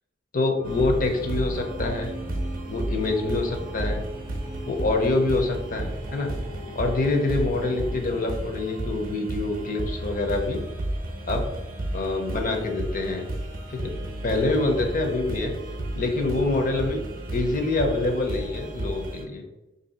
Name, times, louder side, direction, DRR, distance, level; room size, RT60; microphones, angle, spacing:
voice 1, 0.3-2.1 2.7-4.0 4.7-6.3 6.7-10.6 11.3-11.5 11.9-13.3 13.7-13.9 14.2-15.5 15.9-17.0 17.3-19.4, left 2 dB, 45° left, 3 dB, 0.6 m, -26 dB
sound 1, 0.6-8.1, right 1 dB, ahead, 0.4 m, -39 dB
sound 2, 0.6-19.2, right 1 dB, 45° right, 0.6 m, -33 dB
2.9 x 2.7 x 4.1 m, 1.0 s
head